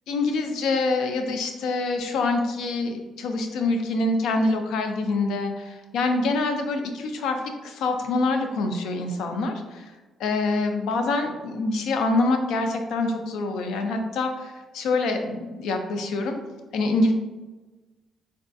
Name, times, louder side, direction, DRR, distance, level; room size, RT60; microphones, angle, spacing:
voice 1, 0.1-9.8 10.2-16.4 16.7-17.1, left 3 dB, 85° left, 5 dB, 0.4 m, -25 dB
3.5 x 2.3 x 2.5 m, 1.2 s
cardioid pair, 140°, 0 cm